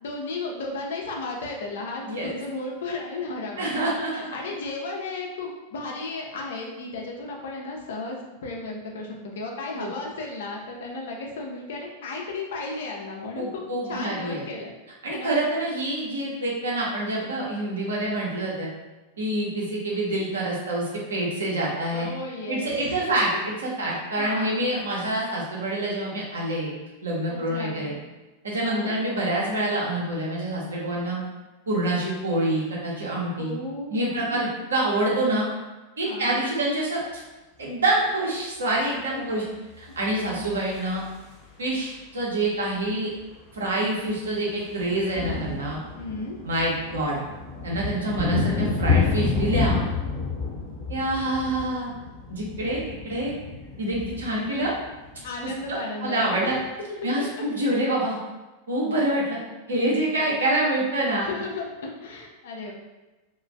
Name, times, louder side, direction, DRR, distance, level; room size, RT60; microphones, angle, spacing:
voice 1, 0.0-13.6 13.9-14.7 15.1-15.3 21.9-23.2 23.9-24.6 27.3-27.8 28.6-28.9 33.4-34.5 36.0-36.4 39.1-39.5 40.1-40.3 46.0-46.4 55.2-56.6 57.0-57.4 61.2-62.7, left 3 dB, 60° left, 0 dB, 0.5 m, -34 dB
voice 2, 3.6-4.1 9.7-9.9 13.3-14.4 15.0-18.7 19.2-20.8 21.1-22.1 22.5-26.7 27.0-28.0 28.4-31.2 31.7-33.5 33.9-35.5 36.0-37.2 37.6-39.4 39.8-41.0 41.6-43.1 43.5-45.8 46.4-47.2 47.6-49.9 50.9-51.9 52.3-53.3 53.8-54.7 55.4-56.6 57.0-58.2 58.7-59.4 59.7-61.3, right 1 dB, 70° right, -4 dB, 0.8 m, -26 dB
sound 1, 39.9-41.5 42.8-42.9 43.1-43.3 43.6-55.7, left 4 dB, 20° left, 0.9 m, -29 dB
2.4 x 2.1 x 3.2 m, 1.1 s
figure-of-eight pair, 90°, 0 cm